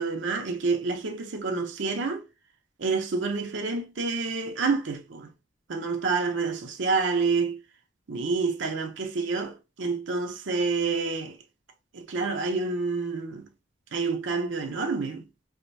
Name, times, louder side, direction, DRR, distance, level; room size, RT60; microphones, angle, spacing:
voice 1, 0.0-2.2 2.8-5.3 5.7-7.6 8.1-11.4 11.9-13.5 13.9-15.3, right 4 dB, 85° right, 0.6 m, -28 dB
4.8 x 2.0 x 2.7 m
head